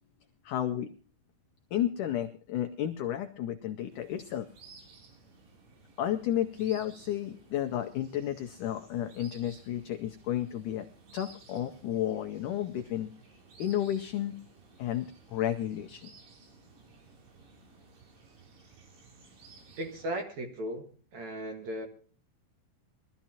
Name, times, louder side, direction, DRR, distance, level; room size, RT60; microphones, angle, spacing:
voice 1, 0.4-0.9 1.7-4.5 6.0-10.9 11.1-13.1 13.6-14.4 14.8-16.1, left 11 dB, 85° left, 6 dB, 1.8 m, -32 dB
sound 1, 3.9-20.1, right 4 dB, 85° right, 5.2 m, -56 dB
voice 2, 19.8-21.9, right 1 dB, 55° right, 4 dB, 2.5 m, -37 dB
22.5 x 13.5 x 2.8 m, 0.39 s
omnidirectional pair, 4.6 m